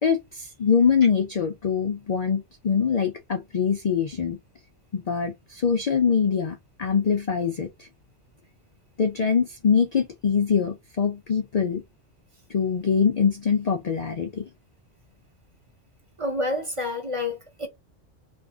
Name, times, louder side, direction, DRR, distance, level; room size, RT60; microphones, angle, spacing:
voice 1, 0.0-4.4 4.9-7.9 9.0-11.8 12.5-14.4, left 6 dB, 55° left, 0.4 m, -23 dB
voice 2, 16.2-17.7, left 2 dB, 30° right, 0.7 m, -28 dB
2.7 x 2.5 x 3.4 m
omnidirectional pair, 1.2 m